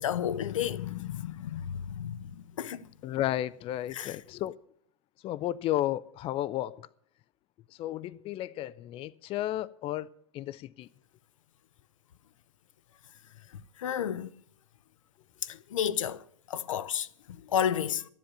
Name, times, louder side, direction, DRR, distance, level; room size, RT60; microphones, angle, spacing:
voice 1, 0.0-2.9 3.9-4.1 13.8-14.3 15.4-16.2 16.5-17.1 17.5-18.1, left 9 dB, 75° left, 0.7 m, -31 dB
voice 2, 3.0-4.6 5.2-6.9 7.8-10.1 10.3-10.9, left 13 dB, 35° left, 0.5 m, -33 dB
13.0 x 10.5 x 7.4 m
hypercardioid pair, 95°, 17 cm